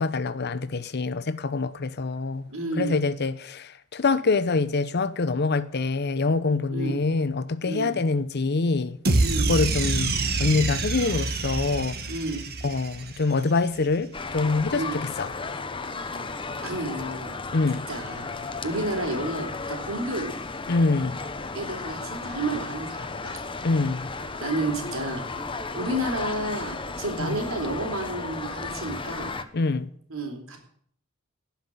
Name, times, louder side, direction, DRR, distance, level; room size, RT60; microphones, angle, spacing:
voice 1, 0.0-2.5 2.8-9.0 9.4-12.0 12.6-15.3 17.5-17.9 20.7-21.2 23.6-24.1 27.2-27.4 29.5-29.9, left 3 dB, 50° left, 0.7 m, -25 dB
voice 2, 2.5-3.0 6.7-7.0 7.6-8.0 9.2-9.5 12.1-12.4 14.7-15.0 15.9-16.0 16.6-17.3 17.9-20.3 21.5-23.4 24.4-25.2 25.7-29.4 30.1-30.6, right 2 dB, 75° right, 3.7 m, -31 dB
sound 1, 9.0-13.4, right 3 dB, 50° right, 1.6 m, -26 dB
sound 2, 14.1-29.4, left 3 dB, 25° left, 0.9 m, -34 dB
17.0 x 5.9 x 9.1 m
head